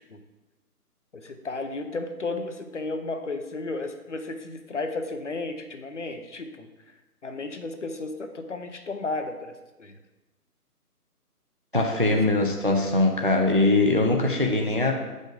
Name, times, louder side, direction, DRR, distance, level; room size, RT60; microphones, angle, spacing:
voice 1, 1.1-6.7 7.2-10.0 12.0-12.3, left 3 dB, 50° left, 7 dB, 0.6 m, -33 dB
voice 2, 11.7-14.9, left 2 dB, 35° right, 2 dB, 0.5 m, -22 dB
7.6 x 5.2 x 3.7 m, 1.1 s
figure-of-eight pair, 150°, 47 cm